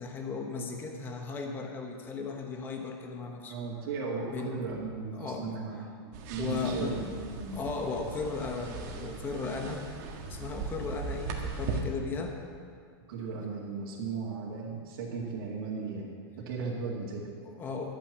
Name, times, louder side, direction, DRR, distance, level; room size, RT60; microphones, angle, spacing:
voice 1, 0.0-3.6 4.2-4.8 5.1-5.6 6.4-7.1 7.5-9.8 10.3-12.4 17.4-17.9, left 4 dB, 15° left, 3 dB, 1.0 m, -36 dB
voice 2, 3.4-7.6 13.1-16.1 16.4-17.3, right 4 dB, 65° right, -7 dB, 2.3 m, -36 dB
sound 1, 6.1-11.8, right 4 dB, 40° right, 1.7 m, -38 dB
12.0 x 9.0 x 7.3 m, 2.1 s
supercardioid pair, 170°, 13 cm